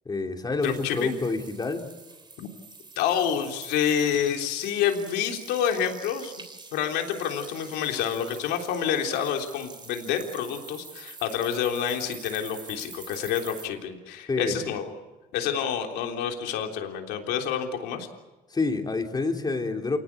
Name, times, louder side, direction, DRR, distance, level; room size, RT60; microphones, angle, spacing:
voice 1, 0.0-1.9 14.3-14.6 18.5-20.0, left 3 dB, 25° left, 4 dB, 3.2 m, -28 dB
voice 2, 0.6-1.2 2.4-2.5 3.0-6.3 6.7-14.9 15.3-18.1, left 8 dB, 90° left, 3 dB, 3.5 m, -28 dB
sound 1, 0.6-13.7, right 4 dB, 25° right, 3.1 m, -46 dB
28.5 x 18.5 x 8.4 m, 1.2 s
cardioid pair, 110°, 17 cm